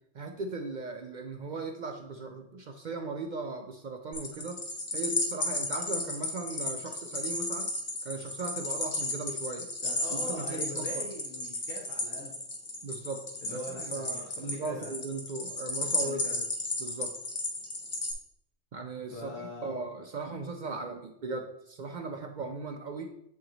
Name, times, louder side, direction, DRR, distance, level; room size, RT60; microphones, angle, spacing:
voice 1, 0.1-4.6 4.9-7.7 8.0-9.7 10.1-11.0 12.8-16.2 16.8-17.1 18.7-23.1, right 3 dB, 60° right, 4 dB, 0.5 m, -38 dB
sound 1, 4.1-18.1, left 2 dB, 35° left, 0.8 m, -34 dB
voice 2, 9.8-12.3 13.4-14.9 15.8-16.4 19.1-19.8, left 1 dB, 90° left, -3 dB, 1.4 m, -42 dB
8.3 x 3.0 x 3.8 m, 0.76 s
omnidirectional pair, 1.3 m